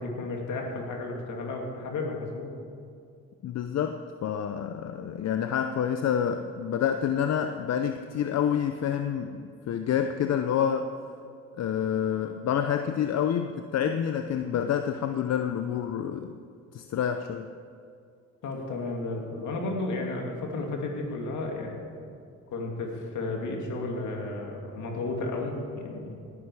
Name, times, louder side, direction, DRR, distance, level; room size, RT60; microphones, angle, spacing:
voice 1, 0.0-2.5 18.4-21.9 22.5-26.2, left 2 dB, 75° left, 0 dB, 2.6 m, -33 dB
voice 2, 3.4-10.9 11.6-16.3 16.7-17.5, left 8 dB, 60° left, 7 dB, 0.7 m, -28 dB
18.5 x 10.0 x 4.9 m, 2.4 s
cardioid pair, 90°, 30 cm